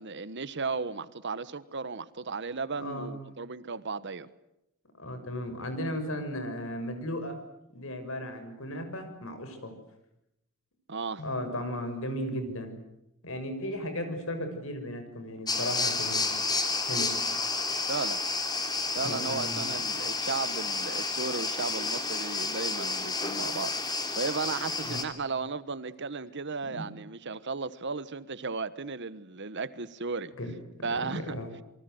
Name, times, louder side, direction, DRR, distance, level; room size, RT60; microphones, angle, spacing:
voice 1, 0.0-4.3 10.9-11.2 17.9-18.2 18.9-30.3 30.8-31.4, right 4 dB, 55° right, 1.3 m, -35 dB
voice 2, 2.8-3.2 5.0-7.4 7.7-9.7 11.2-12.7 13.2-16.4 16.8-17.1 18.9-19.8 24.8-25.0 26.6-26.8 30.4-30.6 30.9-31.5, equal, 70° left, 6.6 m, -35 dB
sound 1, 15.5-25.0, left 3 dB, 20° left, 3.3 m, -31 dB
28.0 x 24.0 x 7.9 m
head